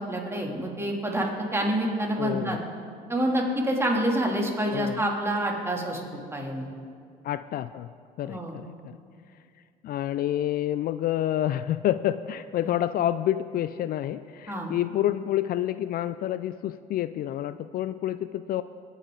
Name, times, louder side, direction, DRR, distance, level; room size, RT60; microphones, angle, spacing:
voice 1, 0.0-2.6 3.1-6.7 8.2-8.6 12.6-12.7 14.5-14.7, right 1 dB, 15° right, -1 dB, 2.9 m, -27 dB
voice 2, 2.2-2.6 4.7-5.0 7.2-7.9 8.2-9.0 9.8-18.6, left 12 dB, 55° left, 14 dB, 0.4 m, -28 dB
21.5 x 8.5 x 3.9 m, 2.2 s
supercardioid pair, 65°, 18 cm